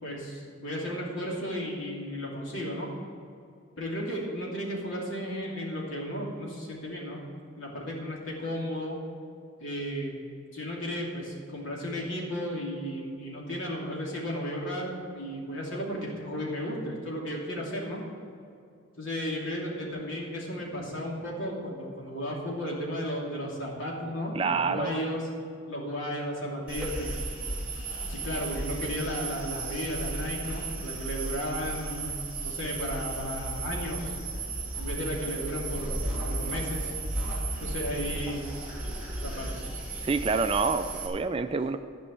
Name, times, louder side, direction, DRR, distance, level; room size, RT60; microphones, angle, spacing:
voice 1, 0.0-2.9 3.8-7.2 7.6-9.0 9.6-10.1 10.5-18.0 19.0-25.3 25.7-27.2 28.0-34.1 34.8-36.0 36.2-36.9 37.6-38.5 39.1-39.6, equal, 65° left, -3 dB, 2.8 m, -34 dB
voice 2, 24.3-25.0 40.0-41.8, right 4 dB, 25° right, 9 dB, 0.3 m, -27 dB
sound 1, 26.7-41.1, right 2 dB, 5° right, 2.5 m, -34 dB
12.5 x 5.4 x 8.3 m, 2.5 s
head